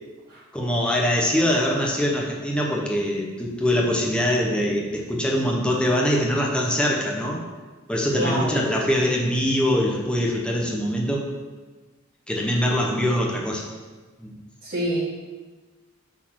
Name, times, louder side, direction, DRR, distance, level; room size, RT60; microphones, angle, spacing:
voice 1, 0.5-7.4 7.9-11.2 12.3-13.7 14.2-14.4, equal, 5° left, -2 dB, 0.9 m, -23 dB
voice 2, 8.1-8.6 14.6-15.0, equal, 45° right, -11 dB, 1.9 m, -26 dB
6.1 x 4.2 x 6.0 m, 1.3 s
head